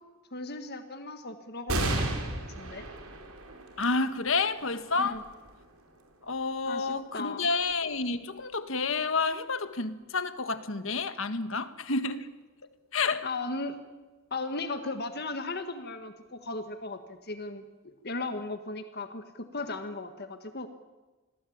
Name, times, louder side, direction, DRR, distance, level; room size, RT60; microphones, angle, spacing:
voice 1, 0.3-2.8 5.0-5.2 6.6-7.5 13.2-13.8 14.3-20.7, left 3 dB, 50° left, 8 dB, 1.7 m, -37 dB
sound 1, 1.7-8.6 9.2-9.3 10.4-11.0, right 2 dB, 90° right, 5.2 m, -36 dB
voice 2, 3.8-5.2 6.2-12.3 12.9-13.3, left 4 dB, 65° left, 11 dB, 1.7 m, -29 dB
27.5 x 21.0 x 8.7 m, 1.2 s
head